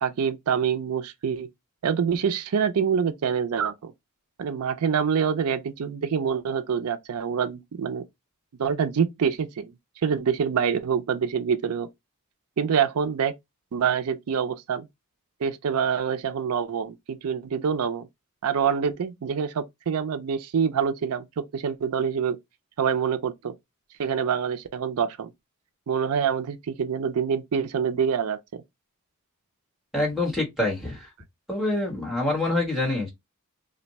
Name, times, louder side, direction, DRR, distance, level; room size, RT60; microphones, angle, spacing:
voice 1, 0.0-1.5 1.8-3.9 4.4-8.0 8.6-9.7 10.0-11.9 12.6-13.3 13.7-14.9 15.4-18.1 18.4-21.2 21.5-22.4 22.8-23.5 24.0-25.3 25.9-28.4, right 7 dB, 90° right, 0.4 m, -26 dB
voice 2, 29.9-31.1 31.5-33.1, left 2 dB, ahead, 1.2 m, -26 dB
2.5 x 2.1 x 4.0 m
head